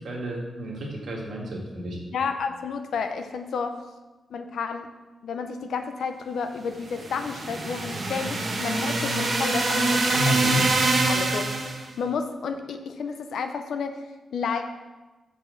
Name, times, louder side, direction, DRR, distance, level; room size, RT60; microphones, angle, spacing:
voice 1, 0.0-2.0 10.1-10.6, equal, 55° right, -2 dB, 1.8 m, -30 dB
voice 2, 2.1-3.8 4.3-4.9 5.2-10.7 11.1-14.0 14.3-14.6, left 5 dB, 80° left, 7 dB, 0.5 m, -31 dB
sound 1, 6.9-11.8, right 2 dB, 40° right, 1.2 m, -25 dB
7.0 x 4.9 x 6.3 m, 1.2 s
wide cardioid pair, 180°, 0 cm